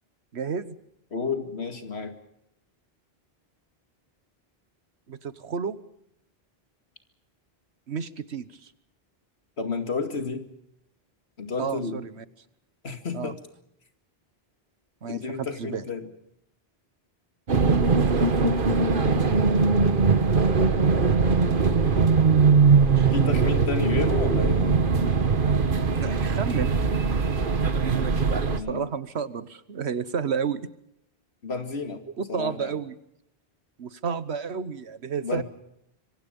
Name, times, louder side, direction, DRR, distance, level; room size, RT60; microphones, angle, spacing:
voice 1, 0.3-0.8 5.1-5.8 7.9-8.7 11.6-12.2 13.1-13.3 15.0-15.8 25.6-26.8 28.7-30.7 32.2-32.9 33.8-35.4, right 6 dB, 90° right, 15 dB, 1.4 m, -31 dB
voice 2, 1.1-2.2 9.6-10.5 11.4-12.0 12.8-13.4 15.0-16.1 23.1-24.6 28.5-28.9 31.4-32.0 32.3-32.8 35.2-35.4, left 4 dB, 85° left, 7 dB, 2.5 m, -31 dB
sound 1, 17.5-28.6, right 4 dB, 55° right, 1.5 m, -21 dB
26.0 x 24.0 x 5.4 m, 0.75 s
omnidirectional pair, 1.1 m